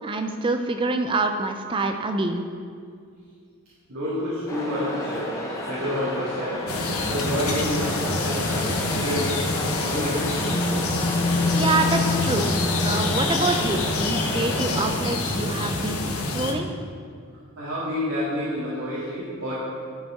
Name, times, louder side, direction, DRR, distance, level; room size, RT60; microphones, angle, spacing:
voice 1, 0.0-2.4 11.5-12.5 12.8-16.7, right 2 dB, 20° right, 5 dB, 0.4 m, -26 dB
voice 2, 3.9-5.4 5.6-10.7 17.6-19.6, equal, 75° right, -9 dB, 1.7 m, -29 dB
sound 1, 4.5-14.9, left 1 dB, 15° left, 0.8 m, -32 dB
sound 2, 6.7-16.5, left 3 dB, 80° left, 0.9 m, -25 dB
10.5 x 5.2 x 3.6 m, 2.2 s
head